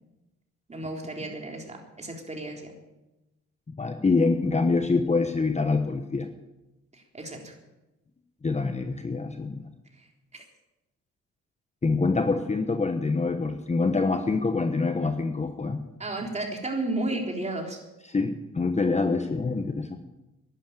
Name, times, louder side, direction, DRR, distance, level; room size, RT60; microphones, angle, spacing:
voice 1, 0.7-2.7 7.1-7.5 10.3-10.4 16.0-17.8, right 2 dB, 20° right, 1 dB, 3.8 m, -33 dB
voice 2, 3.8-6.3 8.4-9.6 11.8-15.8 18.0-20.0, left 3 dB, 20° left, 7 dB, 1.1 m, -25 dB
11.5 x 11.0 x 8.9 m, 0.99 s
cardioid pair, 90°, 30 cm